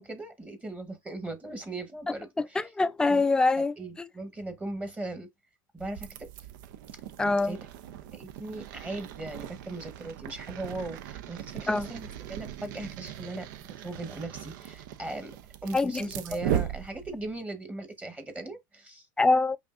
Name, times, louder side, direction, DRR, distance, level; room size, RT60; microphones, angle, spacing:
voice 1, 0.0-2.7 3.1-3.2 3.6-5.3 5.7-6.3 7.4-7.6 8.0-13.5 13.8-15.4 15.6-19.1, right 2 dB, 10° right, 1.1 m, -38 dB
voice 2, 2.6-4.1 7.2-7.6 11.7-11.9 15.7-16.0 19.2-19.6, left 3 dB, 5° left, 0.3 m, -24 dB
sound 1, 5.8-17.4, right 11 dB, 70° right, 0.6 m, -38 dB
5.2 x 2.6 x 2.5 m
hypercardioid pair, 105°, 11 cm